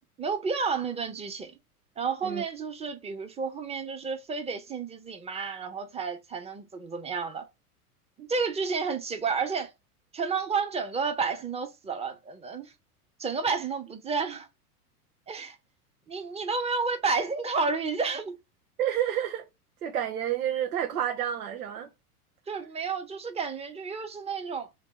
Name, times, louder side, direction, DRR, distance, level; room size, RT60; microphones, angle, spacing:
voice 1, 0.2-1.5 2.0-7.5 8.2-9.7 10.1-12.7 13.2-14.5 15.3-15.6 16.1-18.3 22.5-24.7, right 5 dB, 15° right, 0.9 m, -31 dB
voice 2, 18.8-19.4 19.8-21.9, right 10 dB, 75° right, 1.0 m, -29 dB
3.3 x 3.0 x 4.7 m
hypercardioid pair, 100°, 46 cm